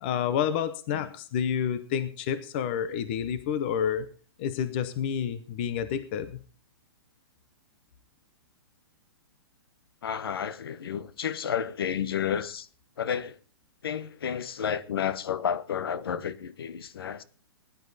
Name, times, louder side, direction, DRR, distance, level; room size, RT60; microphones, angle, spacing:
voice 1, 0.0-4.1 4.4-6.4, left 8 dB, 25° left, 0.7 m, -29 dB
voice 2, 10.0-12.7 13.0-13.4 13.8-17.2, left 8 dB, 65° left, 1.0 m, -31 dB
18.5 x 10.5 x 4.1 m
hypercardioid pair, 180°, 13 cm